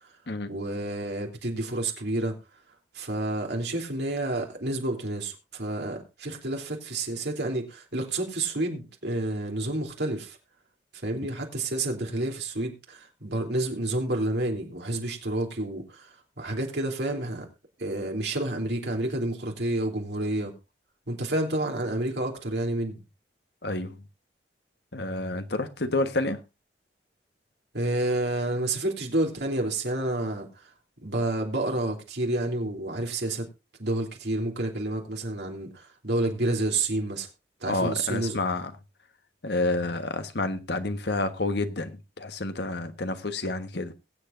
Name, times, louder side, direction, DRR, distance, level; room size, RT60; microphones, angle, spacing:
voice 1, 0.5-2.3 2.9-10.4 10.9-17.5 17.8-20.5 21.1-23.0 27.7-30.7 31.0-33.5 33.8-37.3 37.6-38.4, right 2 dB, 70° right, 3.3 m, -29 dB
voice 2, 23.6-24.0 24.9-26.4 37.6-38.7 39.4-43.9, left 2 dB, 70° left, 1.3 m, -29 dB
22.0 x 8.1 x 2.6 m
head